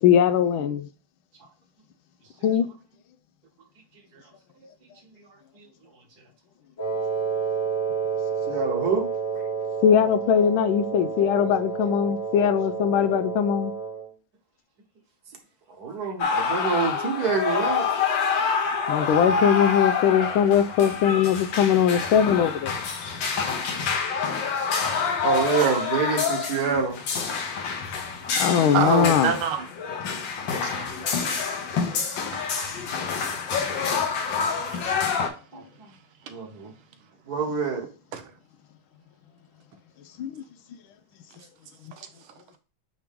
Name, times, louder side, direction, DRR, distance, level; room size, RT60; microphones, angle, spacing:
voice 1, 0.0-0.9 2.4-2.6 9.8-13.7 18.9-22.7 28.4-29.3 40.2-40.4, left 8 dB, 80° left, 1.4 m, -21 dB
Wind instrument woodwind instrument, 6.8-14.1, right 5 dB, 40° left, 1.5 m, -30 dB
voice 2, 8.5-9.1 15.8-17.9 25.2-27.0 30.7-31.1 35.5-35.6 36.3-36.7 37.3-37.8, right 5 dB, 55° right, 1.6 m, -26 dB
sound 1, 16.2-35.3, left 5 dB, 65° left, 1.7 m, -27 dB
voice 3, 28.7-30.0 30.6-30.7 33.5-33.7 34.7-34.8 35.9-36.0 36.3-36.4 38.1-38.3 42.0-42.3, right 7 dB, 90° right, 1.8 m, -28 dB
8.8 x 3.0 x 3.6 m
omnidirectional pair, 2.3 m